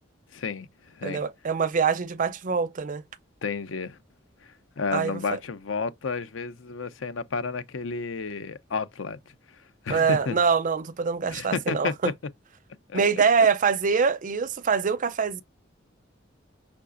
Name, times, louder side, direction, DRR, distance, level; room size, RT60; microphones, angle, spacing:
voice 1, 0.3-1.2 3.4-4.0 4.4-9.2 9.8-10.4 11.3-11.9 12.9-13.0, left 5 dB, 90° left, 0.6 m, -31 dB
voice 2, 1.0-3.0 4.9-5.4 9.9-12.1 12.9-15.4, right 5 dB, 45° right, 0.5 m, -24 dB
5.7 x 3.6 x 2.5 m
head